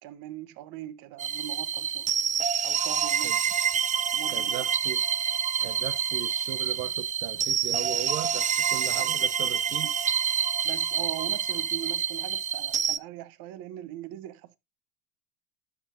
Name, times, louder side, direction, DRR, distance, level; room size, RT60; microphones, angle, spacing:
voice 1, 0.0-2.1 2.6-3.3 4.1-4.7 9.0-9.1 9.8-9.9 10.6-14.6, right 13 dB, 55° right, 1.1 m, -40 dB
sound 1, 1.2-13.0, right 7 dB, 20° right, 0.4 m, -27 dB
voice 2, 4.3-5.0 5.6-9.9, right 13 dB, 75° right, 0.8 m, -37 dB
12.0 x 6.4 x 2.7 m
hypercardioid pair, 75°, 41 cm